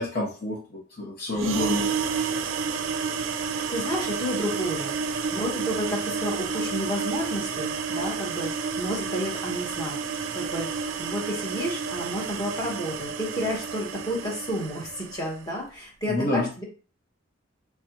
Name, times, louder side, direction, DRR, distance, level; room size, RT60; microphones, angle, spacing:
voice 1, 0.0-1.9 16.1-16.5, left 2 dB, 50° left, -3 dB, 0.9 m, -28 dB
sound 1, 1.3-15.3, right 5 dB, 80° right, 0.4 m, -30 dB
voice 2, 3.7-4.9 5.3-8.5 8.8-10.0 10.3-16.6, equal, 20° left, -3 dB, 1.2 m, -31 dB
3.3 x 3.3 x 2.9 m, 0.36 s
head